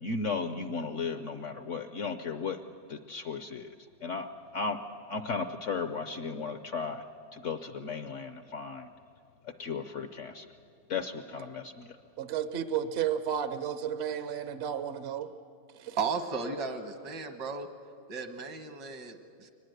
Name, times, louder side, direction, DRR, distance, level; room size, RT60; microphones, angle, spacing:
voice 1, 0.0-2.6 2.9-3.7 4.0-4.8 5.1-7.0 7.3-8.9 9.6-10.5 10.9-11.9, left 4 dB, 60° left, 9 dB, 0.8 m, -35 dB
voice 2, 12.2-15.3 15.7-16.0, right 9 dB, 55° right, 11 dB, 0.7 m, -32 dB
voice 3, 16.0-17.7 18.1-19.5, right 5 dB, 75° right, 7 dB, 2.0 m, -35 dB
23.0 x 19.5 x 8.0 m, 2.3 s
omnidirectional pair, 1.9 m